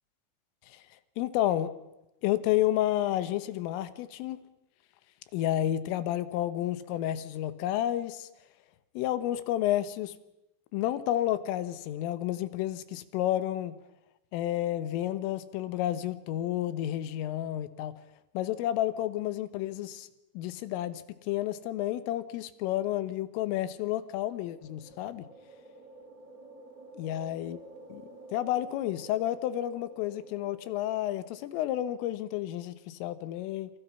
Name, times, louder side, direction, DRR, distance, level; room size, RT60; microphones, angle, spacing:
voice 1, 1.2-1.7 2.2-4.4 5.3-8.3 9.0-10.1 10.7-13.8 14.3-18.0 18.4-20.1 20.4-25.3 27.0-27.6 27.9-33.7, left 13 dB, 90° left, 13 dB, 3.8 m, -31 dB
sound 1, 24.1-31.7, right 2 dB, 20° right, 3.0 m, -51 dB
28.0 x 26.5 x 5.6 m, 0.91 s
omnidirectional pair, 5.7 m